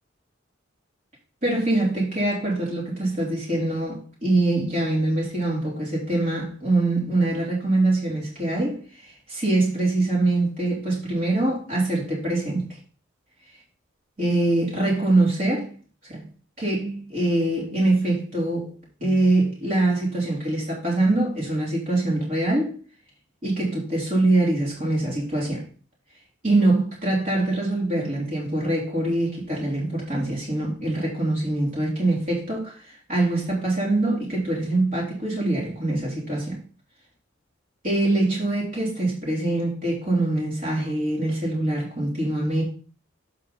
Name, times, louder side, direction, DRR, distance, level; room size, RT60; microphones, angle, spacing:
voice 1, 1.4-12.7 14.2-15.7 16.1-16.2 16.6-18.7 19.0-22.7 23.4-25.6 26.4-36.6 37.8-42.6, right 2 dB, 45° right, 3.3 m, -24 dB
7.7 x 5.7 x 4.0 m
head